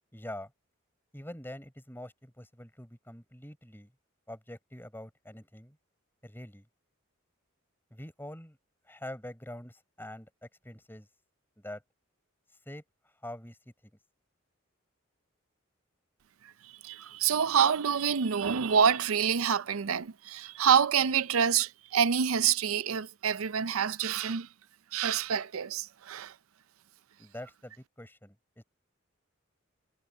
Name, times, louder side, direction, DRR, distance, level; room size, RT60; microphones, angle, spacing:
voice 1, 0.1-0.5 1.1-3.9 4.3-5.8 6.2-6.7 7.9-8.6 8.9-11.1 11.6-11.8 12.7-12.8 13.2-13.6 27.2-28.6, left 1 dB, 10° left, 4.8 m, -45 dB
voice 2, 16.4-24.5 24.9-26.3, right 7 dB, 85° right, 0.5 m, -27 dB
head